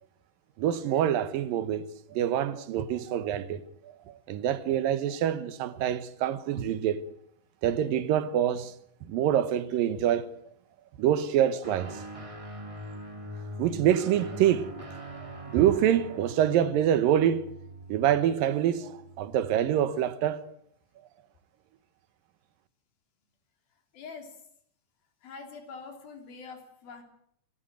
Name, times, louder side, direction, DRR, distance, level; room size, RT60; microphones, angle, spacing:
voice 1, 0.6-7.1 7.6-8.7 9.0-10.3 11.0-12.0 13.6-14.9 15.5-17.5 17.9-20.4, right 10 dB, 75° right, 2.7 m, -26 dB
Guitar, 11.6-19.3, right 1 dB, 30° right, 0.6 m, -42 dB
voice 2, 23.9-24.3 25.2-27.0, left 4 dB, 90° left, 5.1 m, -44 dB
27.0 x 13.5 x 9.1 m
omnidirectional pair, 4.1 m